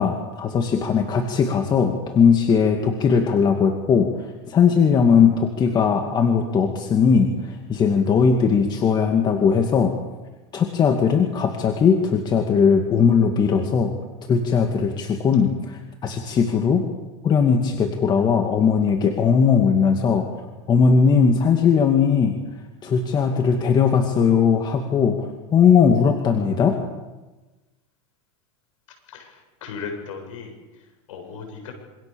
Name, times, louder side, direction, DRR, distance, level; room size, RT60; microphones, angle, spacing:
voice 1, 0.0-4.1 4.5-9.9 10.5-13.9 14.3-16.9 17.2-20.2 20.7-22.4 22.8-26.8, left 6 dB, 25° left, 4 dB, 2.4 m, -19 dB
voice 2, 29.1-31.7, left 5 dB, 85° left, 4 dB, 7.8 m, -37 dB
27.0 x 25.5 x 7.2 m, 1.2 s
supercardioid pair, 135°, 16 cm